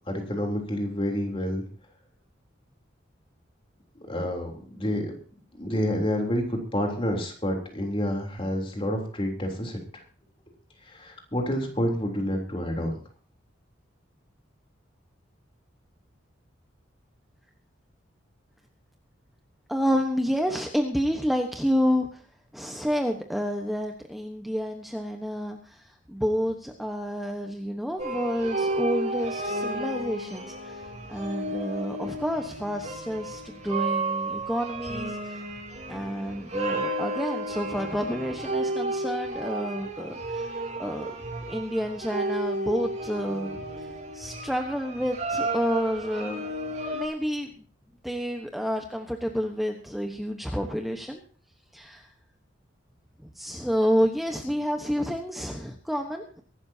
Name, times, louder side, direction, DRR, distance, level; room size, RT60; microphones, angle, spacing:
voice 1, 0.1-1.6 4.1-5.1 5.6-9.8 10.9-13.0, equal, 25° left, 2 dB, 3.5 m, -28 dB
voice 2, 19.7-22.2 22.5-30.8 31.1-35.4 35.9-40.5 40.8-41.1 41.5-43.9 44.1-46.5 46.9-47.5 48.0-51.2 51.7-52.1 53.2-56.4, equal, ahead, 3 dB, 1.1 m, -29 dB
sound 1, 28.0-47.1, right 2 dB, 35° right, 3.6 m, -32 dB
23.5 x 12.0 x 2.8 m, 0.42 s
head